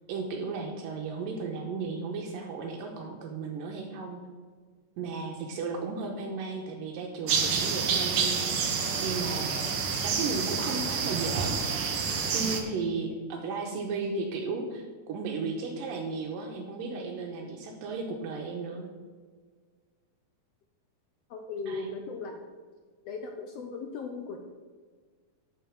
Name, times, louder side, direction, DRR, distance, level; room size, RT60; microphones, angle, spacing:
voice 1, 0.1-4.2 5.0-9.5 10.0-11.6 12.3-18.9 21.7-21.9, right 4 dB, 80° right, 2 dB, 2.7 m, -35 dB
sound 1, 7.3-12.6, right 5 dB, 65° right, 1.3 m, -28 dB
voice 2, 21.3-22.4 23.0-24.4, left 4 dB, 80° left, 4 dB, 1.4 m, -37 dB
9.2 x 7.0 x 7.1 m, 1.5 s
omnidirectional pair, 4.0 m